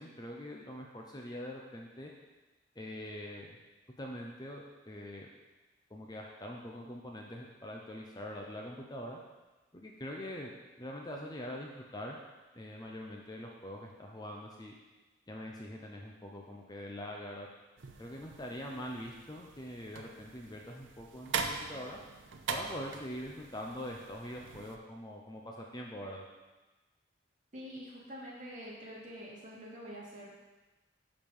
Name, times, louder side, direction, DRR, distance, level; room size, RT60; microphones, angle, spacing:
voice 1, 0.0-2.1 2.8-3.6 4.0-5.3 5.9-9.2 9.7-10.5 10.8-12.2 12.5-14.7 15.3-17.5 18.0-22.0 22.5-26.3, equal, 20° left, 0 dB, 0.8 m, -43 dB
sound 1, 17.8-24.8, right 4 dB, 75° right, 0.7 m, -42 dB
voice 2, 27.5-30.3, equal, 40° right, -6 dB, 2.5 m, -46 dB
10.5 x 5.1 x 5.5 m, 1.1 s
head